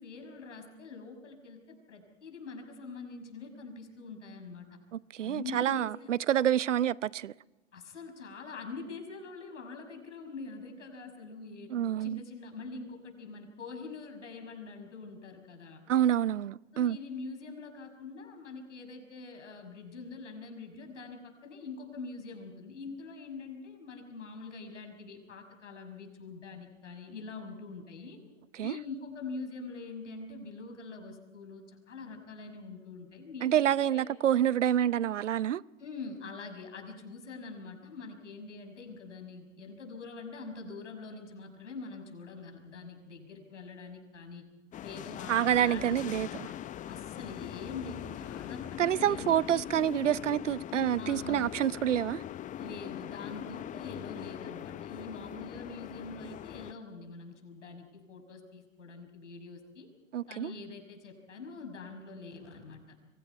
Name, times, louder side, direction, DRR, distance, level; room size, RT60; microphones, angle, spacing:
voice 1, 0.0-4.8 5.2-6.1 7.7-11.7 12.0-15.8 16.7-28.2 28.6-34.1 35.8-44.4 44.8-46.3 46.8-49.5 51.0-51.5 52.6-59.9 60.3-63.0, left 4 dB, 85° left, 6.0 m, -44 dB
voice 2, 5.1-7.3 11.7-12.2 15.9-17.0 28.6-28.7 33.4-35.6 45.3-46.3 48.8-52.2 60.1-60.5, right 10 dB, 90° right, 0.7 m, -27 dB
sound 1, 44.7-56.7, left 11 dB, 20° left, 0.6 m, -41 dB
28.0 x 24.0 x 4.7 m
hypercardioid pair, 105°, 36 cm